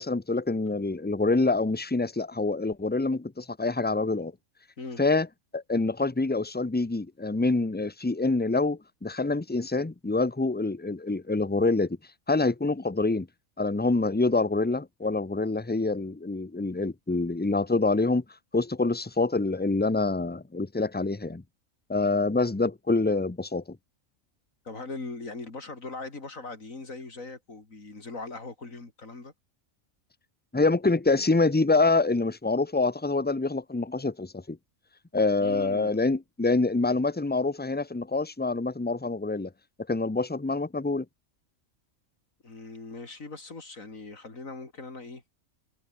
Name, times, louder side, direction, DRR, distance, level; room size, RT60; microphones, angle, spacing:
voice 1, 0.0-4.3 5.0-5.3 5.5-12.0 12.3-13.3 13.6-18.2 18.5-21.4 21.9-23.6 30.5-34.6 35.1-39.5 39.9-41.1, left 3 dB, 15° left, 0.4 m, -26 dB
voice 2, 24.6-29.3 35.4-36.0 42.4-45.2, left 3 dB, 80° left, 4.1 m, -40 dB
omnidirectional pair, 1.4 m